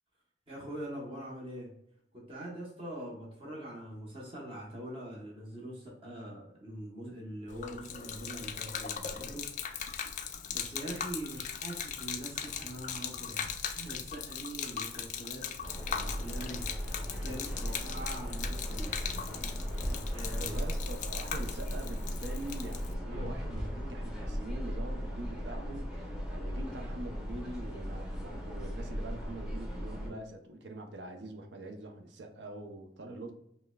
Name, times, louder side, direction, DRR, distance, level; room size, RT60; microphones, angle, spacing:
voice 1, 0.5-1.7 2.1-9.5 10.5-15.5 15.8-16.7 17.2-19.1 20.1-20.6 30.0-30.2 33.0-33.3, right 1 dB, 35° right, 1.0 m, -43 dB
Gurgling / Liquid, 7.5-22.9, left 8 dB, 45° left, 0.3 m, -39 dB
sound 1, 15.6-30.1, equal, 5° right, 0.7 m, -37 dB
sound 2, 19.3-19.9 23.1-24.3, equal, 55° right, 1.3 m, -42 dB
voice 2, 20.4-33.3, right 2 dB, 70° right, 0.6 m, -44 dB
5.4 x 2.1 x 2.3 m
head